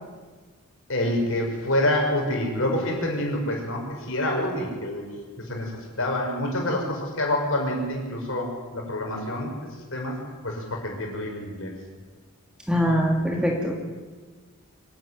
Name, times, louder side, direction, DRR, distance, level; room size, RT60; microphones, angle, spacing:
voice 1, 0.9-5.0 5.5-9.5 9.9-10.1 10.4-11.7 13.0-13.1, left 1 dB, 65° left, 1 dB, 6.0 m, -27 dB
voice 2, 12.7-13.7, equal, 5° right, 0 dB, 2.8 m, -22 dB
25.0 x 12.5 x 9.8 m, 1.4 s
head